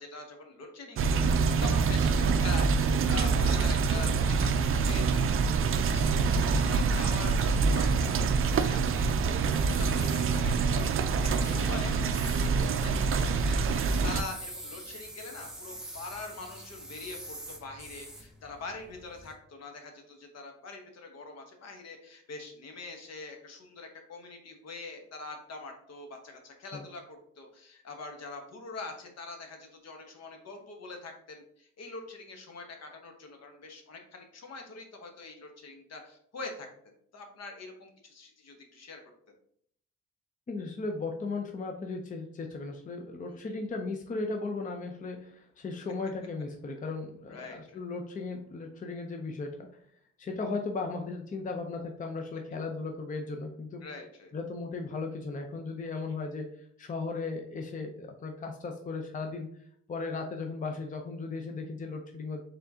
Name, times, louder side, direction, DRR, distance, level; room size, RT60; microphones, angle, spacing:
voice 1, 0.0-11.1 11.4-36.7 37.1-39.0 43.3-43.5 47.3-47.8 53.8-54.3, left 3 dB, 60° left, 4 dB, 1.1 m, -44 dB
sound 1, 1.0-14.2, right 5 dB, 45° right, 0.4 m, -26 dB
sound 2, 8.3-19.3, right 1 dB, ahead, 1.0 m, -48 dB
voice 2, 40.5-49.7 50.2-53.8 54.3-56.5 56.8-59.5 59.9-62.4, left 3 dB, 25° left, 3 dB, 0.6 m, -36 dB
4.5 x 3.7 x 2.8 m, 0.65 s
cardioid pair, 90°, 30 cm